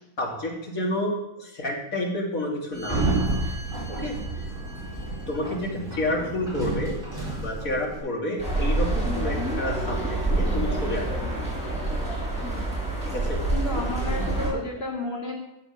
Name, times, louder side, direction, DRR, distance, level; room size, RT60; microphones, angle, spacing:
voice 1, 0.2-3.2 4.0-4.5 5.3-6.9 7.3-11.2 13.0-13.4 14.2-14.6, left 1 dB, 65° left, -1 dB, 3.2 m, -30 dB
Sliding door, 2.7-8.0, right 2 dB, 35° right, 5.0 m, -30 dB
sound 1, 8.4-14.5, right 2 dB, 5° right, 6.3 m, -27 dB
voice 2, 13.5-15.4, left 2 dB, 40° left, -1 dB, 2.6 m, -31 dB
14.0 x 8.0 x 6.7 m, 0.88 s
omnidirectional pair, 1.6 m